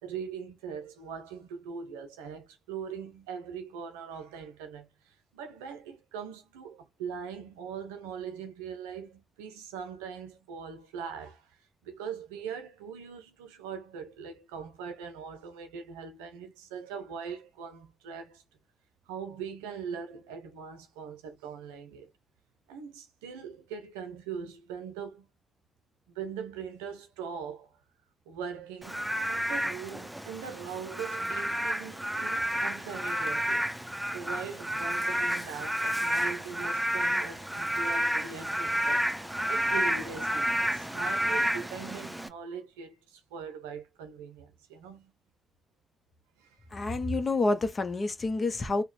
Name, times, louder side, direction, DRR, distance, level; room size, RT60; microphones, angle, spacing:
voice 1, 0.0-11.6 11.8-18.4 19.1-22.1 22.7-25.3 26.1-27.8 28.3-33.8 34.1-39.1 39.5-45.1 46.4-46.6, right 6 dB, 90° right, 0.6 m, -41 dB
Frog / Rain, 28.8-42.3, equal, 5° right, 0.7 m, -30 dB
voice 2, 46.7-48.8, left 2 dB, 40° left, 0.9 m, -28 dB
2.9 x 2.2 x 4.1 m
hypercardioid pair, 45°, 0 cm